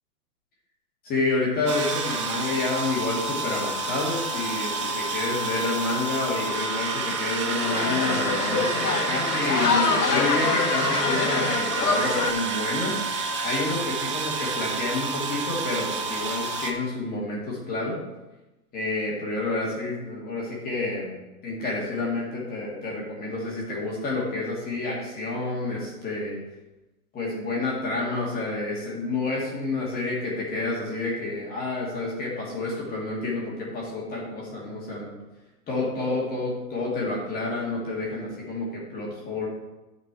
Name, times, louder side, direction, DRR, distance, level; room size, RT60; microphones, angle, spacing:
voice 1, 1.0-18.0 18.7-21.2 21.4-26.4 27.1-35.1 35.7-39.5, left 2 dB, 20° left, -4 dB, 2.3 m, -29 dB
sound 1, 1.7-16.7, right 3 dB, 20° right, 0.4 m, -29 dB
sound 2, 7.1-12.3, left 4 dB, 85° left, 1.0 m, -25 dB
10.5 x 5.2 x 4.5 m, 1.1 s
hypercardioid pair, 125°, 45 cm